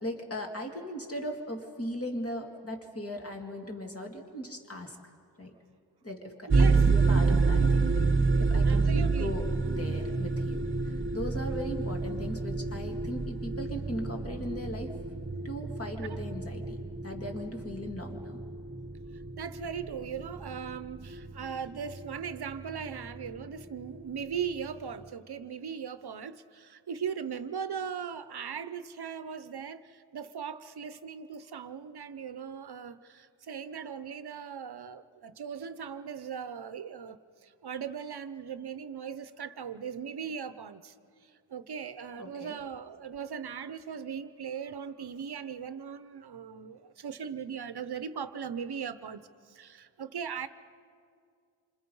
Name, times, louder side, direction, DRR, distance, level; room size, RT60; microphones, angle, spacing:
voice 1, 0.0-5.0 5.4-5.6 6.0-7.9 8.4-14.9 15.4-18.4 42.2-42.5, equal, 30° left, 3 dB, 2.3 m, -38 dB
sound 1, 6.5-25.1, right 4 dB, 25° right, 1.1 m, -29 dB
voice 2, 6.5-6.9 8.6-9.3 16.1-16.2 19.4-40.9 41.2-50.5, right 7 dB, 60° right, 13 dB, 0.8 m, -39 dB
28.0 x 25.5 x 5.5 m, 2.3 s
wide cardioid pair, 145°, 45 cm